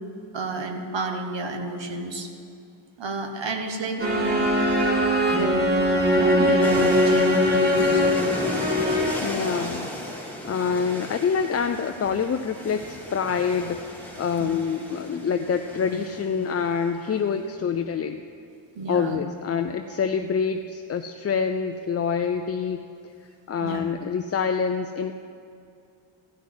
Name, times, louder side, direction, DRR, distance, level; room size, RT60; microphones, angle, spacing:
voice 1, 0.3-2.3 3.0-4.4 5.4-8.4 14.4-14.5 18.7-19.2 23.6-23.8, right 3 dB, 60° right, 4 dB, 1.4 m, -31 dB
sound 1, 4.0-9.4, left 1 dB, 20° right, 1.9 m, -21 dB
sound 2, 6.6-16.9, equal, 5° left, 1.7 m, -36 dB
voice 2, 9.2-9.9 10.4-18.2 18.9-22.8 23.5-25.1, left 6 dB, 35° left, 6 dB, 0.4 m, -26 dB
15.0 x 6.2 x 9.6 m, 2.5 s
wide cardioid pair, 140°, 49 cm